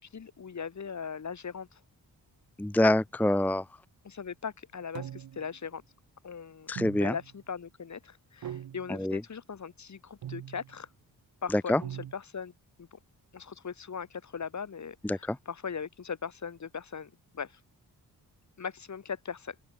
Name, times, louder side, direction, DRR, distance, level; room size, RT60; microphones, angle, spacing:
voice 1, 0.1-1.8 4.0-5.8 6.2-10.9 11.4-12.5 12.8-13.0 13.3-17.6 18.6-19.6, left 6 dB, 45° left, 2.2 m, -39 dB
voice 2, 2.6-3.6 6.7-7.1 8.9-9.2 11.5-11.8 15.0-15.4, left 1 dB, 5° left, 0.7 m, -26 dB
sound 1, 4.9-5.6 6.8-7.4 8.4-9.0 10.2-10.8 11.8-12.1, right 10 dB, 65° right, 1.1 m, -41 dB
open air
cardioid pair, 70°, 38 cm